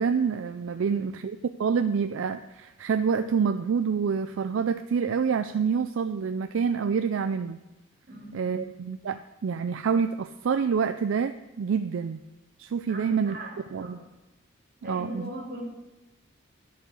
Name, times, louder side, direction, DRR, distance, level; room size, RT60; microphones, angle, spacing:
voice 1, 0.0-7.6 8.3-12.2 12.6-13.4 13.7-14.0 14.9-15.3, right 6 dB, 75° right, 10 dB, 0.4 m, -27 dB
voice 2, 0.7-1.1 8.1-8.7 12.9-14.0 14.8-15.6, right 1 dB, 50° right, -2 dB, 3.2 m, -39 dB
11.0 x 5.5 x 7.7 m, 1.1 s
head